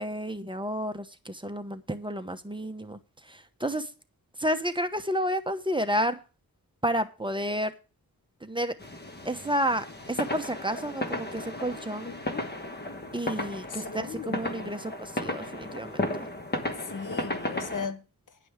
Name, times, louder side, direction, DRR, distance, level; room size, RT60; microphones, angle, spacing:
voice 1, 0.0-3.0 3.3-3.9 4.4-6.2 6.8-7.7 8.4-8.8 9.2-12.1 13.1-16.3, equal, 15° right, 0.9 m, -31 dB
sound 1, 8.8-17.9, left 1 dB, 30° left, 1.4 m, -35 dB
voice 2, 12.0-12.5 13.7-14.7 16.8-18.4, left 6 dB, 60° left, 1.1 m, -38 dB
10.5 x 5.4 x 8.0 m
wide cardioid pair, 100°, 36 cm